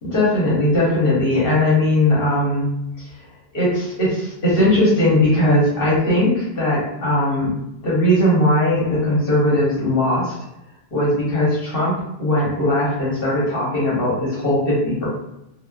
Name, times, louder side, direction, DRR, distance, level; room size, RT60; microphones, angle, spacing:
voice 1, 0.0-2.7 3.5-7.5 7.8-10.3 10.9-15.1, left 1 dB, 65° left, -7 dB, 1.1 m, -19 dB
3.0 x 2.0 x 2.3 m, 0.86 s
omnidirectional pair, 1.0 m